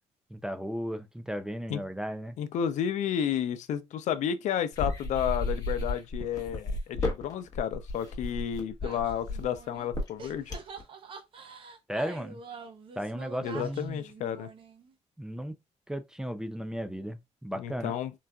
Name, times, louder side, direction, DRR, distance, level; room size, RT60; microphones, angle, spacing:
voice 1, 0.3-2.4 11.9-12.4 13.0-14.0 15.2-15.6 15.9-17.9, equal, 5° right, 0.3 m, -35 dB
voice 2, 2.4-10.5 13.4-14.5 17.5-18.1, left 9 dB, 80° left, 0.4 m, -31 dB
sound 1, 4.7-10.8, left 2 dB, 30° left, 1.0 m, -33 dB
sound 2, 8.8-9.9 10.2-14.9, right 5 dB, 45° right, 0.7 m, -46 dB
3.9 x 2.4 x 2.2 m
cardioid pair, 170°, 12 cm